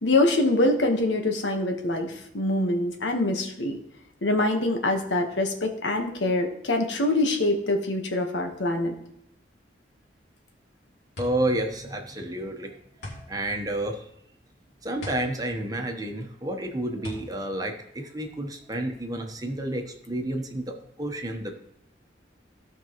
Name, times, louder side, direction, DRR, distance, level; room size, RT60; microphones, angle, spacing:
voice 1, 0.0-3.8 4.2-9.0, left 2 dB, 90° left, 3 dB, 1.3 m, -24 dB
sound 1, 10.5-18.7, left 1 dB, 70° left, 2.7 m, -43 dB
voice 2, 11.2-12.7 13.0-14.1 14.8-21.5, right 1 dB, 20° right, 3 dB, 1.1 m, -30 dB
15.5 x 5.3 x 3.1 m, 0.76 s
head